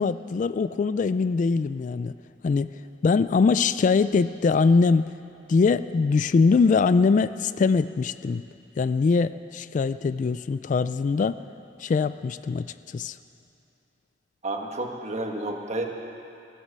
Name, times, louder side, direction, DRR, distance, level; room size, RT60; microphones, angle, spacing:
voice 1, 0.0-2.1 2.4-2.7 3.0-5.1 5.5-8.4 8.8-11.4 11.8-13.2, left 4 dB, 45° left, 14 dB, 0.3 m, -22 dB
voice 2, 14.4-15.9, right 2 dB, 40° right, 2 dB, 1.5 m, -30 dB
15.5 x 12.5 x 6.8 m, 2.7 s
head